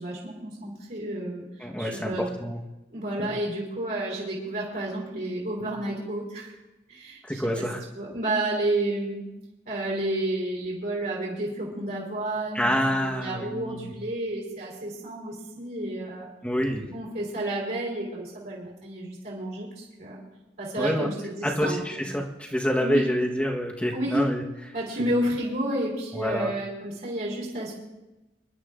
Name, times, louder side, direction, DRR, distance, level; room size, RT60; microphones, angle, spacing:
voice 1, 0.0-1.4 1.8-2.2 2.9-6.5 6.9-7.6 8.0-9.3 9.7-16.3 16.9-20.2 20.6-21.8 22.8-23.1 23.9-24.2 24.7-27.7, right 1 dB, 50° right, -5 dB, 3.7 m, -31 dB
voice 2, 1.6-2.6 3.2-3.3 5.6-5.7 7.2-7.8 12.5-13.9 16.4-16.8 20.8-21.1 21.4-24.7 26.1-26.5, equal, 5° left, 0 dB, 1.2 m, -27 dB
27.0 x 11.5 x 2.5 m, 1.0 s
head